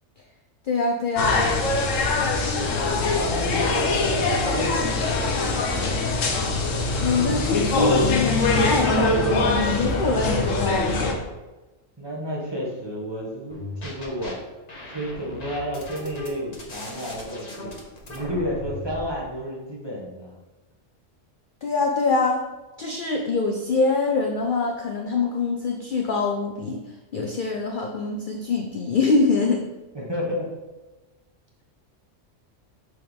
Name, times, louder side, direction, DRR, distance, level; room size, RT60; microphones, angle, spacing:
voice 1, 0.6-1.5 7.0-11.2 21.6-22.4 22.8-26.8 27.1-29.6, left 3 dB, 55° left, 2 dB, 0.6 m, -24 dB
sound 1, 1.2-11.1, left 3 dB, 80° left, 1.2 m, -23 dB
voice 2, 3.1-6.0 12.0-14.4 14.9-17.7 18.1-20.4 29.9-30.5, equal, 20° right, -3 dB, 1.2 m, -31 dB
sound 2, 13.5-14.3 14.7-19.1, left 1 dB, 35° left, 1.1 m, -37 dB
6.3 x 4.6 x 3.5 m, 1.1 s
omnidirectional pair, 1.3 m